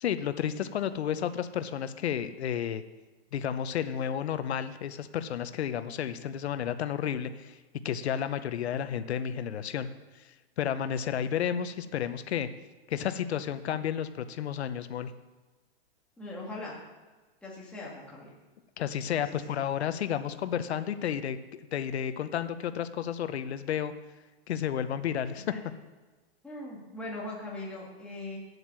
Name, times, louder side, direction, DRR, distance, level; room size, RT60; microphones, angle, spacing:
voice 1, 0.0-2.8 3.3-7.6 7.8-9.9 10.2-10.3 10.6-12.5 12.9-15.1 18.8-21.4 21.7-23.9 24.5-25.4, left 9 dB, 85° left, 11 dB, 0.8 m, -32 dB
voice 2, 16.2-16.7 17.4-18.3 19.2-19.6 25.5-25.6 26.4-28.4, left 2 dB, 5° left, -5 dB, 1.9 m, -40 dB
9.1 x 8.0 x 7.5 m, 1.3 s
hypercardioid pair, 170°, 32 cm